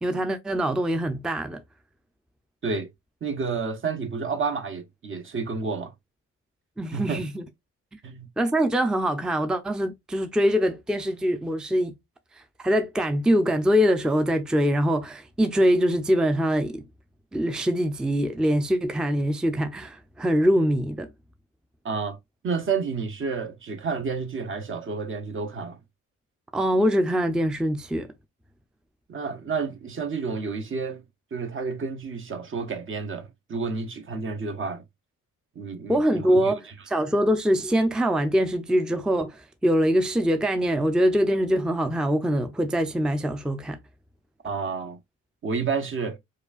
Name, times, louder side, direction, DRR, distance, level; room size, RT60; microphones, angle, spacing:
voice 1, 0.0-1.6 6.8-7.4 8.4-11.9 12.3-16.8 17.3-21.1 26.5-28.1 35.9-43.8, equal, 5° right, 0.5 m, -23 dB
voice 2, 3.2-5.9 6.9-7.2 8.0-8.3 21.8-22.2 22.4-25.8 29.1-31.0 31.3-34.8 35.6-36.5 44.4-45.0 45.4-46.2, right 5 dB, 45° right, 0.8 m, -30 dB
4.8 x 2.4 x 2.4 m
cardioid pair, 90°, 30 cm